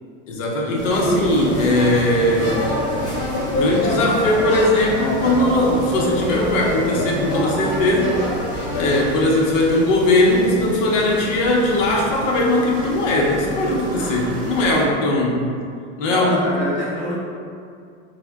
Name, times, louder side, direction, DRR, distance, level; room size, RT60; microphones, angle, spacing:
voice 1, 0.3-2.6 3.5-8.2 8.7-15.4 16.0-16.4, left 1 dB, 80° left, -2 dB, 0.7 m, -19 dB
sound 1, 0.8-14.9, equal, 40° right, 0.7 m, -33 dB
sound 2, 0.9-9.2, left 1 dB, 25° left, 0.8 m, -25 dB
voice 2, 16.1-17.1, equal, 5° left, -18 dB, 0.4 m, -26 dB
3.5 x 2.0 x 2.2 m, 2.3 s
supercardioid pair, 175°, 37 cm